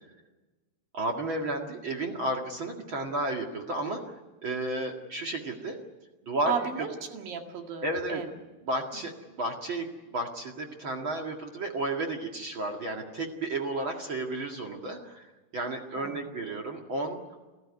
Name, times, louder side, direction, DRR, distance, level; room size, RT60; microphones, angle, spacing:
voice 1, 0.9-5.8 6.2-6.9 7.8-8.2 8.6-15.3 15.5-17.2, right 2 dB, 40° right, 2 dB, 2.1 m, -32 dB
voice 2, 6.5-8.3 8.9-9.0 16.0-16.3, right 7 dB, 65° right, 3 dB, 3.7 m, -35 dB
28.5 x 14.5 x 9.6 m, 1.2 s
omnidirectional pair, 4.5 m